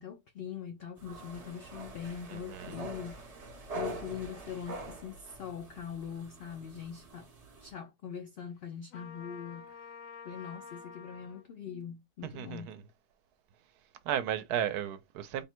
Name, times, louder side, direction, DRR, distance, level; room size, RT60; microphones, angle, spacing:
voice 1, 0.0-3.2 3.7-7.3 7.6-9.9 10.2-12.8, left 8 dB, 85° left, 0.5 m, -42 dB
sound 1, 1.0-7.7, right 2 dB, 40° right, 0.6 m, -44 dB
voice 2, 2.3-2.8 12.2-12.8 14.0-15.4, right 10 dB, 85° right, 1.1 m, -34 dB
Trumpet, 8.9-11.4, left 6 dB, 70° left, 1.1 m, -48 dB
3.5 x 2.1 x 4.3 m
omnidirectional pair, 1.6 m